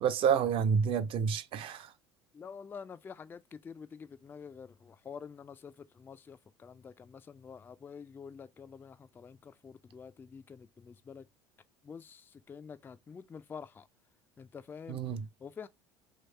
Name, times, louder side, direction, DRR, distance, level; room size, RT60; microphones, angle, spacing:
voice 1, 0.0-1.9 14.9-15.3, right 7 dB, 40° right, 0.5 m, -29 dB
voice 2, 2.3-11.2 11.8-13.9 14.4-15.0 15.4-15.7, left 6 dB, 15° left, 0.3 m, -48 dB
3.0 x 2.9 x 4.3 m
figure-of-eight pair, 65°, 14 cm